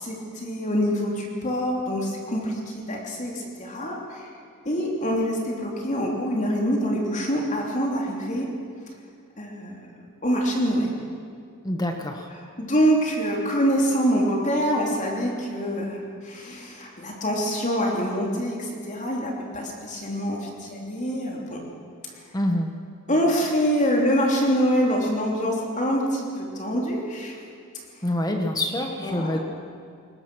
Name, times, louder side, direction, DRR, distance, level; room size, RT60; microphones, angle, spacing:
voice 1, 0.0-4.3 4.6-8.5 9.4-9.8 10.2-10.9 12.6-21.6 23.1-27.4 29.0-29.4, equal, 35° left, -1 dB, 3.2 m, -25 dB
voice 2, 11.6-12.3 22.3-22.7 28.0-29.4, left 1 dB, 20° left, 3 dB, 1.3 m, -26 dB
22.0 x 19.5 x 6.2 m, 2.3 s
head